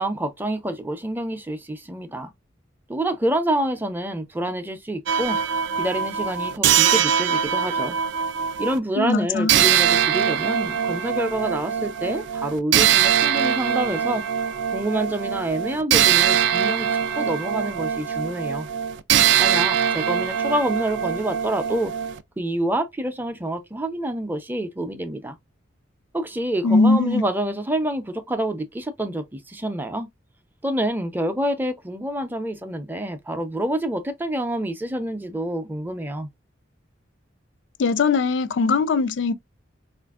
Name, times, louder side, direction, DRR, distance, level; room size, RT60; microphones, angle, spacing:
voice 1, 0.0-2.3 2.9-5.4 5.8-8.0 8.6-14.2 14.7-18.7 19.4-21.9 22.4-25.4 26.1-30.1 30.6-36.3, right 1 dB, 10° right, 0.5 m, -27 dB
sound 1, 5.1-8.8 9.5-22.2, right 9 dB, 65° right, 0.3 m, -22 dB
voice 2, 9.0-9.5 26.6-27.2 37.8-39.3, left 3 dB, 65° left, 0.4 m, -20 dB
4.0 x 2.5 x 2.3 m
head